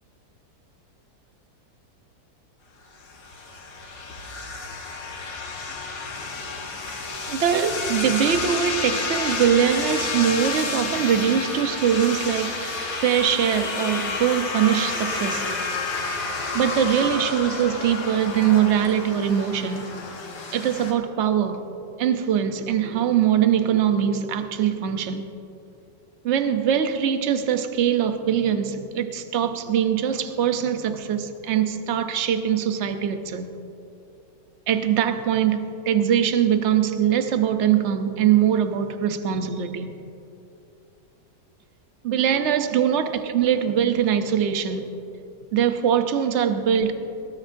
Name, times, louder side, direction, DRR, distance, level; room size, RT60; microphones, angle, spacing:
sound 1, 3.0-20.9, left 3 dB, 75° left, 2.0 m, -30 dB
voice 1, 7.3-15.7 16.5-19.9 20.5-21.6 22.0-25.3 26.2-33.5 34.7-40.0 42.0-44.9 45.5-46.9, right 9 dB, 55° right, 8 dB, 0.9 m, -22 dB
19.5 x 16.5 x 2.7 m, 2.8 s
omnidirectional pair, 1.8 m